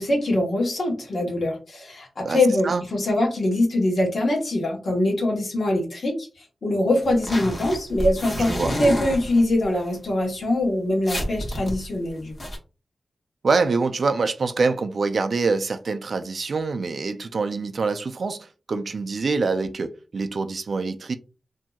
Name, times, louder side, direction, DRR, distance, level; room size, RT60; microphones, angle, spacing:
voice 1, 0.0-6.3 6.6-12.3, left 1 dB, 65° left, 1.0 m, -23 dB
sound 1, 7.0-9.8 10.3-10.4 10.7-10.8 11.0-12.6, equal, 40° left, 0.9 m, -29 dB
voice 2, 8.4-8.8 13.4-21.1, right 4 dB, 60° right, 0.3 m, -25 dB
2.8 x 2.6 x 2.2 m
wide cardioid pair, 110°, 0 cm